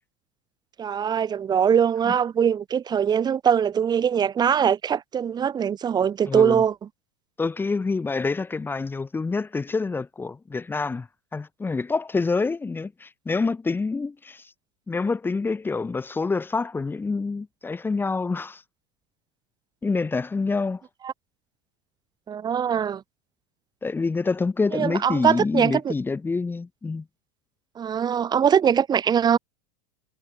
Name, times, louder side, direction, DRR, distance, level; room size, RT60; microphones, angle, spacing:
voice 1, 0.8-6.7 21.0-21.1 22.3-23.0 24.7-25.9 27.8-29.4, right 8 dB, 25° right, 5.6 m, -22 dB
voice 2, 6.3-6.6 7.4-11.1 11.3-14.5 14.9-18.6 19.8-20.8 23.8-27.0, left 4 dB, 10° left, 4.7 m, -27 dB
supercardioid pair, 135°, 17 cm